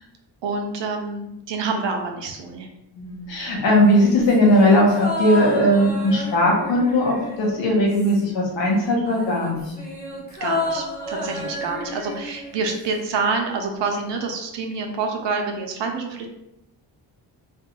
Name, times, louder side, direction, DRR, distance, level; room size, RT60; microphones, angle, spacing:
voice 1, 0.4-2.7 10.4-16.3, right 4 dB, 75° right, 3 dB, 0.6 m, -27 dB
voice 2, 2.9-9.7 11.2-11.4, left 1 dB, 85° left, -2 dB, 1.0 m, -19 dB
sound 1, 3.7-8.5 8.7-13.1 13.3-13.4, left 1 dB, 25° left, 0.9 m, -32 dB
2.5 x 2.3 x 2.9 m, 0.84 s
cardioid pair, 90°, 43 cm